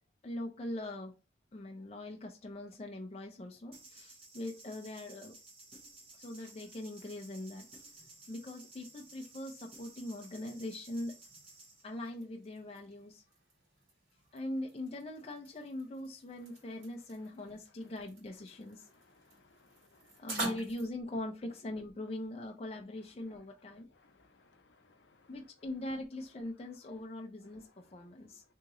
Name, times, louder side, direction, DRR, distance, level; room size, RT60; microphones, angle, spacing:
voice 1, 0.2-1.1 1.5-5.3 6.1-7.7 8.3-11.1 11.8-13.2 14.3-18.9 20.2-23.9 25.3-28.4, left 1 dB, 30° left, 0.4 m, -42 dB
sound 1, 3.7-11.9, right 3 dB, 30° right, 0.8 m, -55 dB
sound 2, 6.0-20.9, right 2 dB, 75° right, 1.9 m, -49 dB
voice 2, 18.8-20.3 23.8-25.5 27.8-28.1, left 3 dB, 70° left, 0.6 m, -66 dB
2.9 x 2.8 x 3.6 m
head